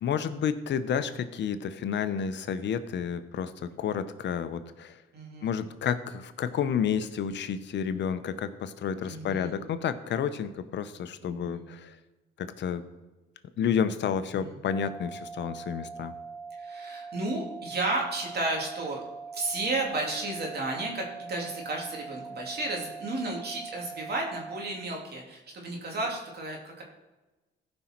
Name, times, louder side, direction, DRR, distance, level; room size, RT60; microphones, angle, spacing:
voice 1, 0.0-5.0 5.4-12.0 12.4-12.8 13.6-16.1, left 7 dB, 65° left, 11 dB, 0.8 m, -30 dB
voice 2, 5.1-5.5 9.0-9.5 11.2-11.6 14.3-14.5 16.6-19.0 19.3-26.8, right 2 dB, 55° right, 0 dB, 2.8 m, -33 dB
sound 1, 14.6-24.6, right 4 dB, 20° right, 2.8 m, -42 dB
15.5 x 5.4 x 4.5 m, 1.1 s
cardioid pair, 90°, 20 cm